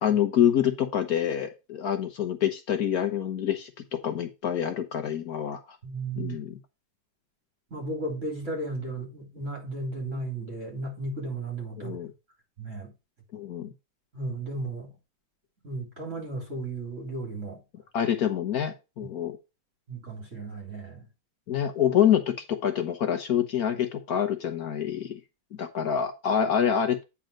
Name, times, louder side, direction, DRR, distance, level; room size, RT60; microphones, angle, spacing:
voice 1, 0.0-5.6 6.2-6.6 11.8-12.1 13.3-13.7 17.9-19.3 21.5-25.2 25.6-27.0, left 9 dB, 60° left, 1.3 m, -26 dB
voice 2, 5.8-6.4 7.7-12.0 12.6-12.9 14.1-14.9 15.6-17.6 19.9-21.1, right 2 dB, 45° right, 3.8 m, -34 dB
9.0 x 4.3 x 5.0 m
omnidirectional pair, 1.9 m